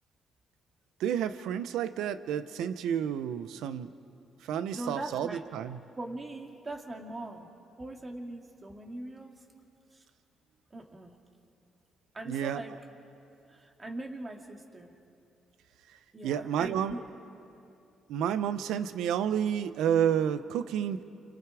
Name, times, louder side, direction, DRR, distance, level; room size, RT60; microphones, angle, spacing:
voice 1, 1.0-3.9 4.4-5.8 12.3-12.6 16.2-16.9 18.1-21.0, right 9 dB, 85° right, 13 dB, 0.8 m, -30 dB
voice 2, 4.7-5.4 6.0-7.5 7.8-9.4 9.9-10.0 10.7-11.2 12.1-12.8 13.5-14.9 16.1-17.2, right 2 dB, 25° right, 3 dB, 2.3 m, -41 dB
29.0 x 26.0 x 4.9 m, 2.7 s
cardioid pair, 90°, 0 cm